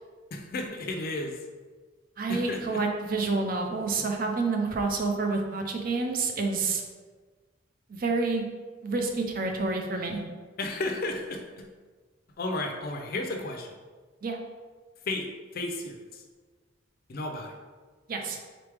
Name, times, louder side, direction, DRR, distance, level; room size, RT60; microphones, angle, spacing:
voice 1, 0.3-1.4 2.3-2.8 10.6-11.7 12.4-13.7 15.1-15.3 15.5-16.2 17.1-17.5, left 2 dB, 45° left, 3 dB, 0.5 m, -33 dB
voice 2, 2.2-6.8 7.9-8.4 8.8-10.2 14.2-14.4 18.1-18.4, right 3 dB, 45° right, 3 dB, 0.5 m, -28 dB
3.9 x 3.4 x 3.3 m, 1.4 s
head